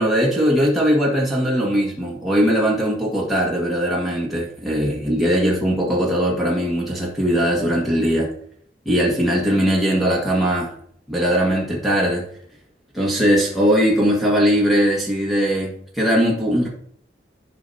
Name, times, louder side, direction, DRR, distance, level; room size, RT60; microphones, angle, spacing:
voice 1, 0.0-8.3 8.8-10.7 11.1-12.2 12.9-16.7, equal, ahead, -4 dB, 1.7 m, -20 dB
12.0 x 4.9 x 2.8 m, 0.63 s
head